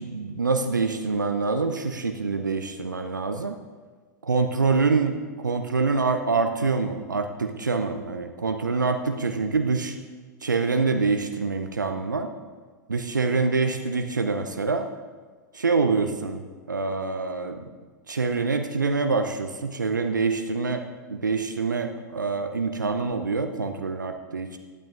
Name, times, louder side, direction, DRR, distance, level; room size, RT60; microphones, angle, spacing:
voice 1, 0.0-3.5 4.2-10.0 10.4-12.3 12.9-14.9 15.5-16.4 16.7-17.6 18.1-20.8 21.1-24.6, right 4 dB, 85° right, 6 dB, 0.7 m, -25 dB
19.0 x 12.0 x 2.5 m, 1.4 s
figure-of-eight pair, 95°, 10 cm